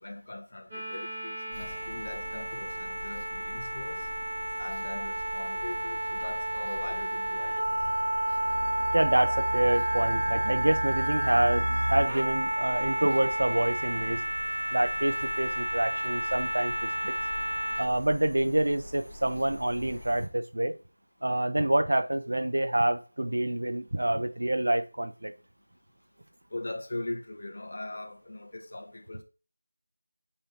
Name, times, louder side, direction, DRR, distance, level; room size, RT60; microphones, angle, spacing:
voice 1, 0.0-4.1 4.6-7.7 26.5-29.2, left 2 dB, 40° left, 1.1 m, -40 dB
sound 1, 0.7-17.8, right 1 dB, 20° right, 1.7 m, -31 dB
sound 2, 1.5-20.3, left 1 dB, ahead, 1.9 m, -46 dB
sound 3, 7.7-12.1, right 1 dB, 85° right, 0.4 m, -34 dB
voice 2, 8.9-14.2 14.7-17.1 17.8-20.7 21.2-25.3, right 1 dB, 70° right, 0.9 m, -27 dB
5.5 x 4.4 x 5.2 m
figure-of-eight pair, 175°, 0 cm